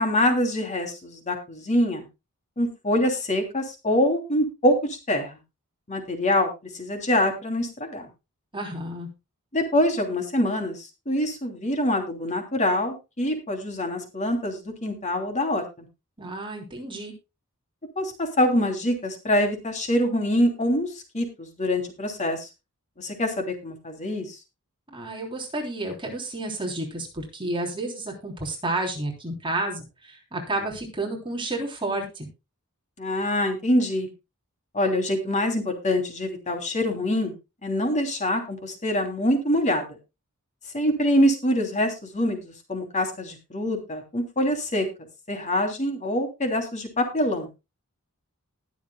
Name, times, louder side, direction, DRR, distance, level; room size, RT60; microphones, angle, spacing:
voice 1, 0.0-2.0 2.6-5.4 5.9-8.1 9.5-15.9 18.0-22.5 23.0-24.4 33.0-34.1 34.7-37.3 37.6-40.0 40.7-44.9 45.3-47.5, left 1 dB, 35° left, 5 dB, 3.0 m, -25 dB
voice 2, 8.5-9.1 16.2-17.1 24.9-32.3, right 2 dB, 25° right, 1 dB, 3.3 m, -31 dB
20.5 x 7.2 x 2.3 m, 0.26 s
head